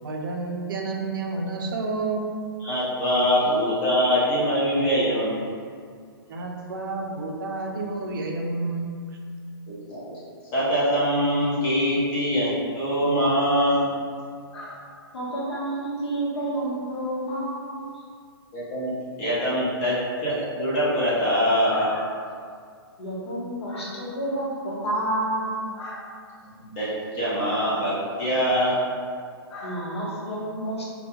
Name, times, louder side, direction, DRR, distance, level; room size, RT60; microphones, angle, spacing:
voice 1, 0.0-2.2 6.3-8.9, right 3 dB, 55° right, 0 dB, 0.4 m, -30 dB
voice 2, 2.6-5.6 9.7-10.0 10.5-13.9 18.5-21.9 26.5-28.8, equal, 25° left, -8 dB, 0.6 m, -23 dB
voice 3, 15.1-17.9 21.6-22.0 23.0-26.0 29.5-30.8, right 1 dB, 85° left, -6 dB, 0.9 m, -30 dB
2.2 x 2.2 x 2.9 m, 2.1 s
hypercardioid pair, 155°, 14 cm